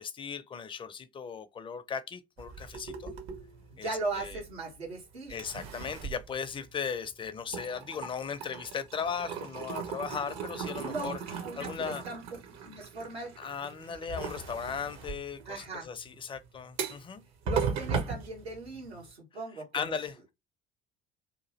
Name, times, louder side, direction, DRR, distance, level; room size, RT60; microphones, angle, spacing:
voice 1, 0.0-3.1 3.8-4.4 5.3-11.2 11.6-12.0 13.4-17.2 19.7-20.3, left 6 dB, 15° left, 0.4 m, -37 dB
sound 1, 2.4-4.9 5.3-7.1 7.4-19.1, right 6 dB, 55° right, 0.8 m, -38 dB
voice 2, 3.7-5.4 10.7-11.1 11.4-12.2 12.6-13.3 15.5-15.9 17.4-19.9, right 3 dB, 85° right, 1.1 m, -38 dB
2.8 x 2.4 x 2.9 m
figure-of-eight pair, 60°, 31 cm